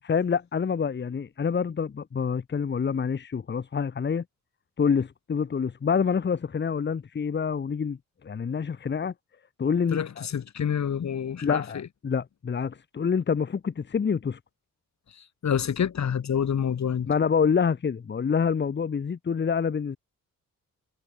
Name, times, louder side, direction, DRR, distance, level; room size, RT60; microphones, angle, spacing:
voice 1, 0.0-4.2 4.8-9.1 9.6-10.3 11.4-14.4 17.1-20.0, left 6 dB, 35° left, 0.9 m, -27 dB
voice 2, 9.9-11.9 15.1-17.1, left 8 dB, 55° left, 2.0 m, -28 dB
cardioid pair, 80°, 34 cm